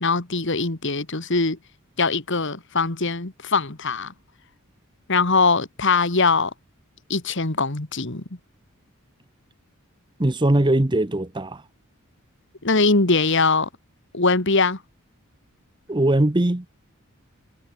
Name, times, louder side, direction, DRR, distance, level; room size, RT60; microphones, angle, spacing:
voice 1, 0.0-1.6 2.0-4.1 5.1-6.5 7.1-8.2 12.6-13.7 14.1-14.8, left 3 dB, 55° left, 2.0 m, -21 dB
voice 2, 10.2-11.6 15.9-16.7, right 1 dB, 20° right, 0.9 m, -20 dB
head